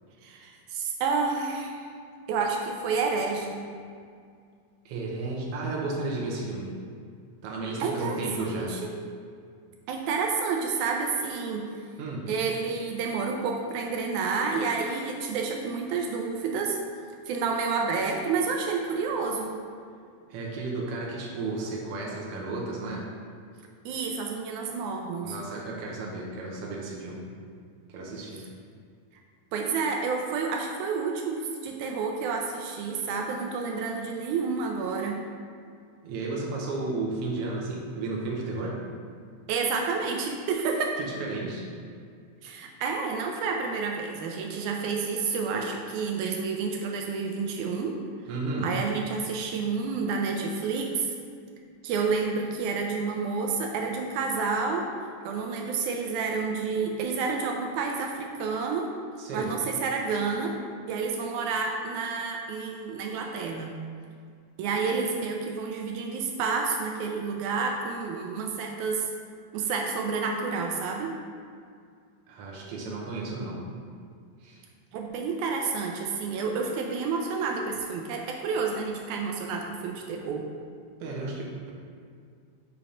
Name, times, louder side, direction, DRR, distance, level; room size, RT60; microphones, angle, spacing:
voice 1, 0.2-1.8 2.3-3.7 7.8-8.2 8.6-9.0 9.9-11.7 12.3-16.8 17.3-19.6 23.9-25.4 29.5-35.2 39.5-41.0 42.4-48.0 48.6-51.1 51.8-54.9 55.2-58.9 59.3-60.6 60.9-63.8 64.6-69.1 69.5-71.1 74.9-80.5, right 4 dB, 80° right, 2 dB, 2.0 m, -29 dB
voice 2, 4.8-6.7 7.4-8.8 12.0-12.3 20.3-23.1 25.2-27.3 27.9-28.4 36.0-38.8 41.0-41.7 48.2-48.7 59.2-59.5 72.3-73.6 74.4-74.6 81.0-81.7, right 3 dB, 65° right, -3 dB, 1.6 m, -33 dB
7.0 x 2.9 x 5.0 m, 2.2 s
omnidirectional pair, 3.5 m